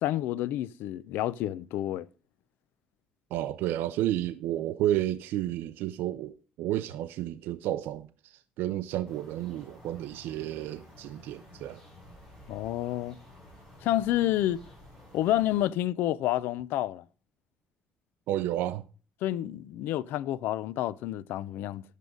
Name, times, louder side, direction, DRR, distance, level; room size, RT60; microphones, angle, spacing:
voice 1, 0.0-2.1 12.5-13.2 13.8-14.6 15.1-17.0 19.2-21.8, left 13 dB, 85° left, 0.5 m, -29 dB
voice 2, 3.3-11.8 18.3-18.8, right 13 dB, 85° right, 0.6 m, -31 dB
sound 1, 9.0-15.7, left 1 dB, 5° left, 5.8 m, -52 dB
11.0 x 8.3 x 5.1 m
cardioid pair, 170°, 3 cm